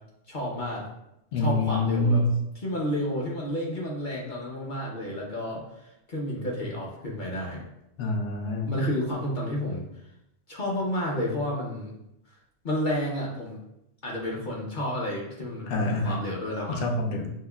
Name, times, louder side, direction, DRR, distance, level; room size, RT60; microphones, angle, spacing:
voice 1, 0.3-0.9 1.4-2.2 2.5-7.7 8.7-9.8 10.5-11.9 12.6-13.6 14.0-16.9, left 1 dB, 50° left, -3 dB, 0.6 m, -31 dB
voice 2, 1.3-2.4 8.0-8.7 15.7-16.2 16.7-17.3, left 1 dB, 70° left, 2 dB, 0.9 m, -26 dB
5.4 x 2.0 x 2.2 m, 0.84 s
omnidirectional pair, 1.3 m